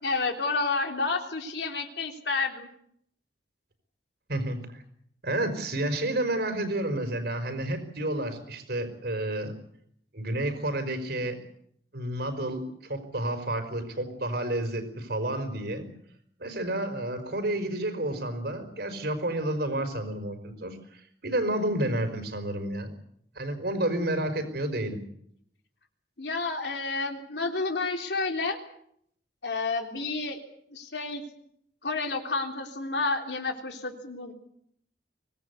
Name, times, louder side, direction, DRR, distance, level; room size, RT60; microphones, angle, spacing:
voice 1, 0.0-2.7 26.2-28.6 29.4-30.4 30.7-31.2 31.8-34.3, left 3 dB, 75° left, 4 dB, 3.5 m, -30 dB
voice 2, 4.3-4.8 5.2-9.5 10.1-11.4 11.9-15.9 16.4-22.9 23.3-25.0, right 1 dB, 65° right, 8 dB, 4.9 m, -30 dB
24.5 x 19.0 x 8.3 m, 0.70 s
head